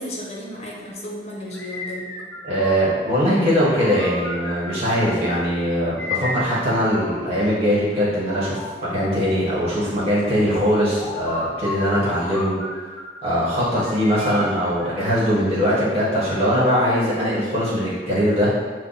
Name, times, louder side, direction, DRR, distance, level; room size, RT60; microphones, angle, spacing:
voice 1, 0.0-2.2 12.0-12.2, equal, 35° left, -3 dB, 0.8 m, -34 dB
sound 1, 1.5-3.1 3.7-5.3 6.0-7.6 8.2-9.4 10.6-13.3 13.8-15.5, left 2 dB, 10° left, 0.4 m, -34 dB
voice 2, 2.4-12.5 13.2-18.5, equal, 35° right, -9 dB, 1.4 m, -21 dB
5.6 x 2.1 x 4.1 m, 1.5 s
head